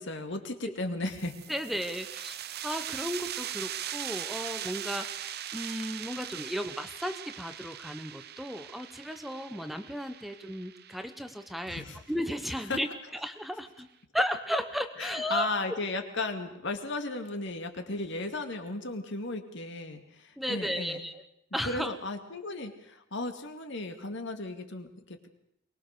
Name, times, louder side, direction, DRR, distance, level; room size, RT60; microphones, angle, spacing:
voice 1, 0.0-1.4 11.7-12.0 12.7-12.8 15.0-21.1 21.6-25.3, left 2 dB, 65° left, 6 dB, 2.4 m, -35 dB
sound 1, 1.1-12.4, right 11 dB, 55° right, 0.8 m, -40 dB
voice 2, 1.5-12.9 13.1-13.9 14.1-15.5 20.4-21.2 21.5-21.9, equal, ahead, 8 dB, 1.0 m, -34 dB
23.5 x 20.0 x 6.7 m, 0.78 s
head